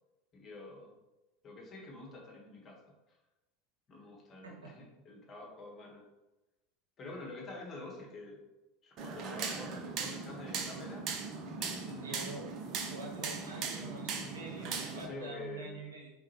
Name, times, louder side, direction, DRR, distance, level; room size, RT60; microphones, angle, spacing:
voice 1, 0.3-0.9 1.4-2.8 3.1-3.2 3.9-6.0 7.0-8.4 8.8-11.1 11.5-12.4 14.0-14.3 14.9-15.9, left 2 dB, 35° left, -2 dB, 1.5 m, -47 dB
sound 1, 9.0-15.1, right 5 dB, 45° right, 0.7 m, -39 dB
voice 2, 12.0-12.5 12.9-16.1, right 3 dB, 80° right, -2 dB, 1.1 m, -46 dB
4.5 x 3.6 x 3.1 m, 1.0 s
figure-of-eight pair, 80°, 0 cm